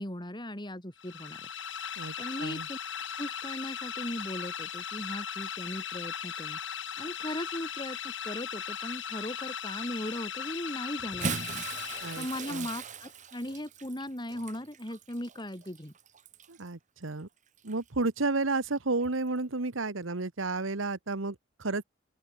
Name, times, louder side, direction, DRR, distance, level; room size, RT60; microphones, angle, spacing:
voice 1, 0.0-1.5 2.2-2.8 3.2-6.6 7.0-11.7 12.2-15.9, left 1 dB, 25° left, 4.3 m, -38 dB
sound 1, 1.0-12.8, left 8 dB, 65° left, 2.7 m, -38 dB
Bathtub (filling or washing) / Splash splatter, 11.0-16.7 17.6-17.7 19.2-19.3, right 5 dB, 40° right, 1.3 m, -40 dB
voice 2, 12.0-12.7 16.5-17.3 17.6-21.8, right 3 dB, 85° right, 1.3 m, -32 dB
open air
head